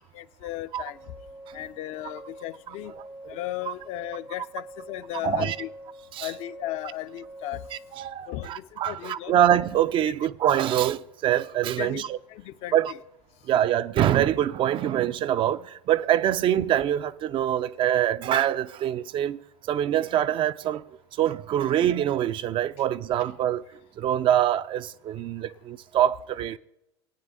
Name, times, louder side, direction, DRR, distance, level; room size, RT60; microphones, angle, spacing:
voice 1, 0.1-1.0 1.5-2.9 3.3-5.7 6.2-7.7 8.3-9.4 11.8-12.0 12.3-13.0, left 15 dB, 50° left, 0.5 m, -35 dB
sound 1, 0.8-8.1, right 1 dB, 65° right, 1.1 m, -46 dB
voice 2, 5.2-5.6 6.1-6.3 7.9-12.2 12.7-12.9 13.5-19.4 19.7-20.8 21.1-23.6 24.0-26.6, right 11 dB, 40° right, 0.4 m, -24 dB
19.5 x 9.0 x 2.6 m
hypercardioid pair, 80°, 14 cm